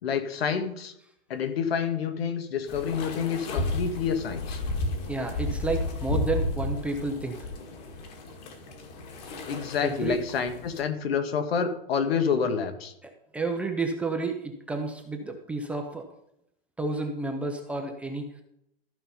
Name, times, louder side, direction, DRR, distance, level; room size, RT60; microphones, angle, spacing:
voice 1, 0.0-0.9 1.3-4.6 9.5-12.9, left 6 dB, 85° left, 8 dB, 1.7 m, -28 dB
sound 1, 2.7-10.8, left 2 dB, 45° left, 2.3 m, -33 dB
voice 2, 5.1-7.4 9.8-10.2 13.0-16.1 16.8-18.4, right 3 dB, 5° right, 3 dB, 0.5 m, -31 dB
14.0 x 5.6 x 5.4 m, 0.78 s
supercardioid pair, 165°, 30 cm